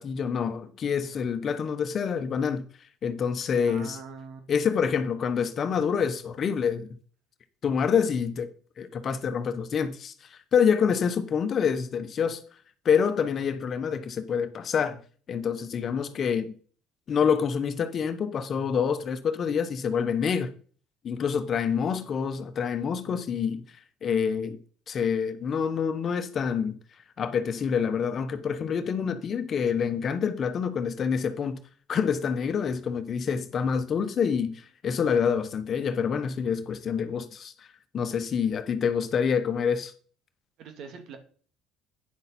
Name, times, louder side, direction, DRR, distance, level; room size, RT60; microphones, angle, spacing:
voice 1, 0.0-2.7 3.0-4.0 4.5-6.9 7.6-8.5 8.8-12.4 12.8-15.0 15.3-16.5 17.1-20.5 21.0-23.6 24.0-24.6 24.9-26.8 27.2-31.6 31.9-37.5 37.9-39.9, left 7 dB, 45° left, 1.1 m, -27 dB
voice 2, 3.7-4.4 40.6-41.2, right 5 dB, 65° right, 2.0 m, -42 dB
9.6 x 6.6 x 4.4 m
supercardioid pair, 80°, 0 cm